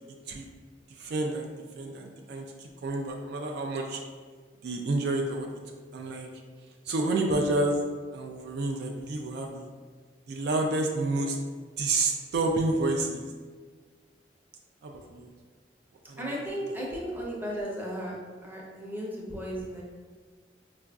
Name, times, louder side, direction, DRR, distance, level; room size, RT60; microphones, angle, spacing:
voice 1, 1.0-1.5 1.8-4.0 4.6-5.5 5.9-6.3 6.9-7.8 8.1-9.7 10.3-11.4 11.8-13.2 14.8-15.3 16.1-16.4, right 2 dB, 65° right, 2 dB, 0.3 m, -29 dB
voice 2, 16.2-18.1 18.4-19.8, equal, 10° right, -4 dB, 0.6 m, -35 dB
4.6 x 2.5 x 2.2 m, 1.5 s
head